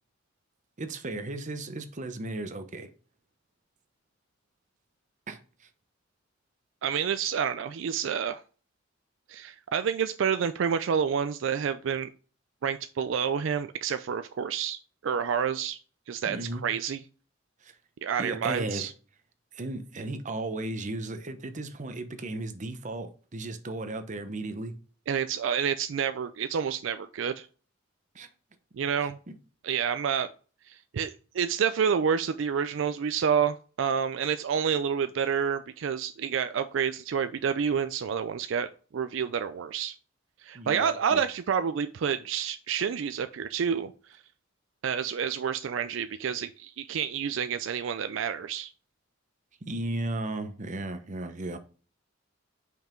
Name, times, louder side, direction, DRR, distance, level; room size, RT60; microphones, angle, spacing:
voice 1, 0.8-2.9 5.3-5.7 16.2-16.6 17.6-17.8 18.2-18.9 19.5-24.7 28.1-28.3 29.3-29.4 40.5-41.2 49.6-51.6, right 2 dB, 40° right, 0.8 m, -35 dB
voice 2, 6.8-8.4 9.3-12.1 12.6-14.8 15.0-15.8 16.1-17.0 18.0-18.9 25.1-27.5 28.8-29.2 29.6-30.3 30.7-38.7 38.9-40.0 40.4-43.9 44.8-48.7, right 7 dB, 70° right, 0.4 m, -29 dB
5.6 x 4.6 x 3.7 m
head